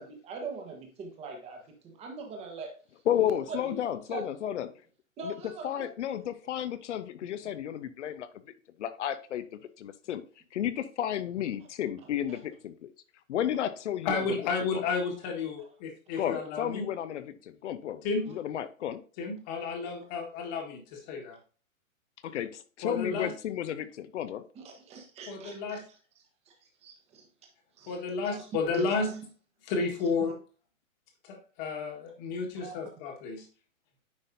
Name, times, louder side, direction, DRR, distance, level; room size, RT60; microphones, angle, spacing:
voice 1, 0.0-2.7 3.2-3.8 4.1-4.3 5.2-5.9 12.3-12.4 24.6-25.8 26.5-26.6 26.8-27.3 27.8-28.0 28.3-28.5 28.7-29.2 30.2-30.3 32.6-32.8, right 4 dB, 15° right, 2 dB, 1.1 m, -42 dB
voice 2, 3.1-4.7 5.2-5.3 5.6-8.3 8.8-9.4 9.8-10.2 10.5-12.9 13.3-14.2 14.7-14.8 16.2-19.0 22.2-23.8 24.1-24.4, left 10 dB, 55° left, 13 dB, 0.8 m, -32 dB
voice 3, 14.0-16.9 18.0-18.3 19.2-21.4 22.8-23.3 25.3-25.8 27.9-29.1 29.7-30.3 31.2-33.5, left 4 dB, 30° left, 3 dB, 1.6 m, -32 dB
9.7 x 4.0 x 2.7 m, 0.37 s
hypercardioid pair, 150°, 41 cm